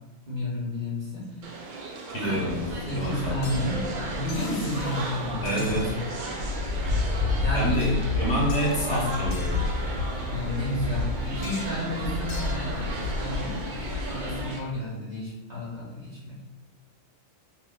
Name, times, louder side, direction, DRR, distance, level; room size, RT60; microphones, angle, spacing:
voice 1, 0.3-1.5 2.2-2.6 2.9-3.8 4.1-6.0 7.4-8.0 10.2-13.6 14.1-16.4, left 1 dB, 35° right, -7 dB, 0.9 m, -32 dB
sound 1, 1.4-14.6, right 3 dB, 90° right, 0.4 m, -37 dB
voice 2, 2.1-3.4 5.4-5.9 7.5-9.6, equal, 55° left, -5 dB, 0.9 m, -27 dB
sound 2, 2.4-14.5, left 3 dB, 75° left, 1.1 m, -31 dB
2.7 x 2.6 x 3.4 m, 1.1 s
omnidirectional pair, 1.4 m